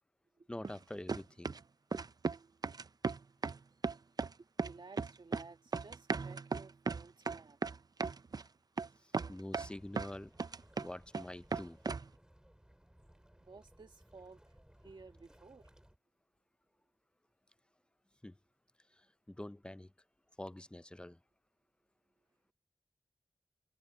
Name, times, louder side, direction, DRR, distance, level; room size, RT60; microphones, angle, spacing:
voice 1, 0.5-1.6 9.0-10.3 10.8-11.8 18.2-18.3 18.9-19.9 20.4-21.2, left 1 dB, 10° left, 0.6 m, -46 dB
sound 1, 0.6-0.8 1.1-1.6 1.9-2.4 2.6-3.6 3.8-4.3 4.6-5.5 5.7-8.4 8.8-8.9 9.1-10.1 10.4-11.2 11.5-12.1, right 4 dB, 55° right, 0.5 m, -36 dB
voice 2, 4.4-7.6 13.3-15.7, right 4 dB, 85° right, 2.1 m, -56 dB
sound 2, 9.6-16.0, equal, 10° right, 3.2 m, -62 dB
wide cardioid pair, 75°, 8 cm